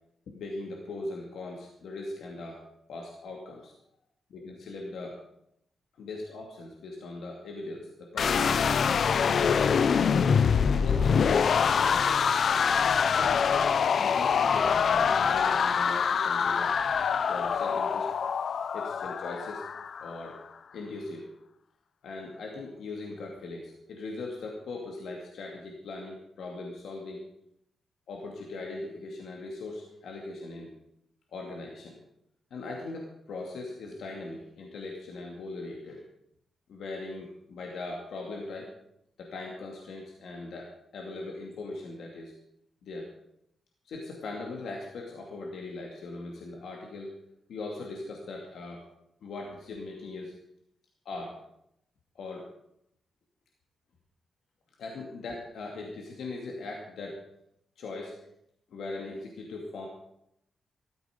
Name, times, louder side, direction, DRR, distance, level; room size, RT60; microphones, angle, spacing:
voice 1, 0.3-2.6 2.9-3.7 4.3-5.2 6.0-8.7 9.3-9.9 10.6-12.2 13.1-16.8 17.3-18.2 18.7-19.7 20.0-20.4 20.7-21.3 22.0-27.2 28.1-30.7 31.3-32.0 32.5-36.0 36.7-38.7 39.2-42.3 42.8-43.1 43.8-47.1 47.5-48.8 49.2-50.3 51.0-51.4 52.1-52.5 54.8-57.2 57.8-58.2 58.7-59.9, left 2 dB, 85° left, -1 dB, 2.5 m, -40 dB
sound 1, 8.2-20.2, left 6 dB, 60° left, 0.5 m, -25 dB
14.0 x 13.5 x 5.2 m, 0.76 s
cardioid pair, 95°, 0 cm